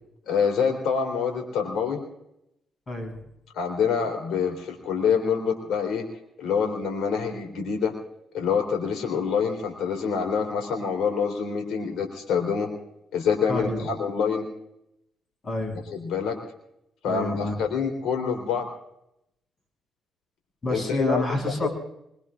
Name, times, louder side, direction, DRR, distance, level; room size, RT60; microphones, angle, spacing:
voice 1, 0.3-2.0 3.6-6.0 6.4-7.9 8.3-12.7 13.1-14.5 15.9-16.4 17.0-18.7 20.7-21.2 21.6-21.7, left 6 dB, 80° left, 4 dB, 3.7 m, -26 dB
voice 2, 2.9-3.2 13.5-13.9 15.4-15.8 17.0-17.6 20.6-21.7, left 1 dB, 35° left, 4 dB, 6.6 m, -28 dB
24.0 x 23.0 x 2.5 m, 0.80 s
cardioid pair, 90°, 0 cm